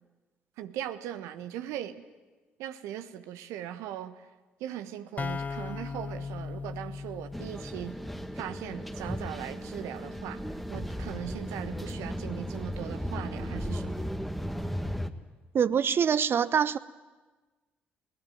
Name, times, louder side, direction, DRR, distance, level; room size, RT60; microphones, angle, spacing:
voice 1, 0.6-2.0 2.6-4.3 4.6-8.0 8.3-10.4 10.7-14.0, right 11 dB, 65° right, 11 dB, 1.2 m, -39 dB
sound 1, 5.2-8.8, left 4 dB, 30° left, 0.6 m, -38 dB
sound 2, 7.3-15.1, equal, ahead, 1.6 m, -36 dB
voice 2, 15.5-16.8, right 7 dB, 45° right, 17 dB, 0.8 m, -24 dB
22.5 x 18.0 x 9.2 m, 1.3 s
figure-of-eight pair, 50°, 5 cm